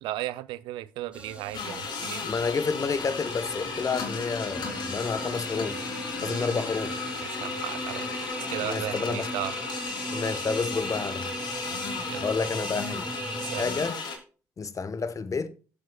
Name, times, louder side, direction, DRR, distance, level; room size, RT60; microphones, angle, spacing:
voice 1, 0.0-2.2 6.2-6.4 7.2-8.1 8.5-9.5 11.7-12.3 13.4-13.7, right 15 dB, 75° right, 0.5 m, -35 dB
sound 1, 1.1-13.9, right 2 dB, 15° right, 3.4 m, -38 dB
sound 2, 1.5-14.2, left 5 dB, 60° left, 2.6 m, -35 dB
voice 2, 2.2-5.9 6.2-7.0 8.6-9.3 10.1-11.3 12.2-13.1 13.5-14.0 14.6-15.5, left 5 dB, 40° left, 1.1 m, -30 dB
16.5 x 7.6 x 2.3 m
hypercardioid pair, 50°, 8 cm